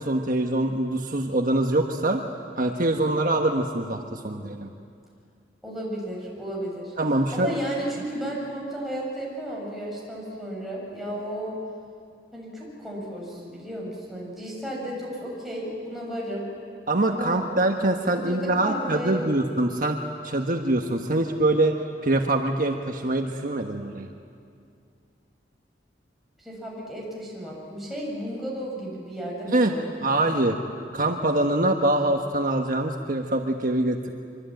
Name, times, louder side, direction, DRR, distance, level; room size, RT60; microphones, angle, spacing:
voice 1, 0.0-2.2 2.6-4.7 7.0-7.5 16.9-20.0 20.2-21.7 22.0-24.1 29.5-29.7 30.0-30.6 30.9-34.1, right 2 dB, 55° right, 3 dB, 1.3 m, -24 dB
voice 2, 5.6-6.9 7.3-11.6 12.3-16.5 17.0-17.5 17.8-19.3 26.4-30.5, equal, ahead, -4 dB, 7.6 m, -34 dB
25.0 x 24.5 x 9.2 m, 2.3 s
head